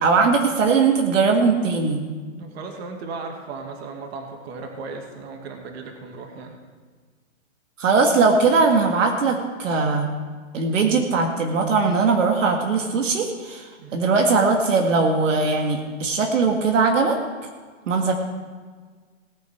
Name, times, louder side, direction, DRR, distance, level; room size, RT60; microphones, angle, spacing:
voice 1, 0.0-2.0 7.8-10.1 10.5-17.2 17.9-18.1, right 4 dB, 65° right, 1 dB, 2.1 m, -20 dB
voice 2, 2.4-6.6 13.8-14.0, right 4 dB, 50° right, 3 dB, 2.4 m, -36 dB
18.5 x 9.9 x 4.6 m, 1.5 s
hypercardioid pair, 155°, 40 cm